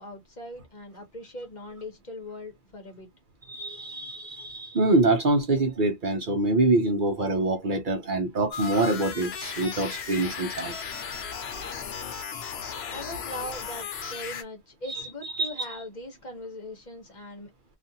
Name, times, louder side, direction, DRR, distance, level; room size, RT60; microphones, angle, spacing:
voice 1, 0.0-3.1 12.8-17.5, left 1 dB, 45° left, 1.0 m, -40 dB
voice 2, 3.5-10.7 14.9-15.5, right 2 dB, 55° right, 0.7 m, -25 dB
sound 1, 8.5-14.4, left 6 dB, 70° left, 0.9 m, -36 dB
2.5 x 2.4 x 2.7 m
omnidirectional pair, 1.1 m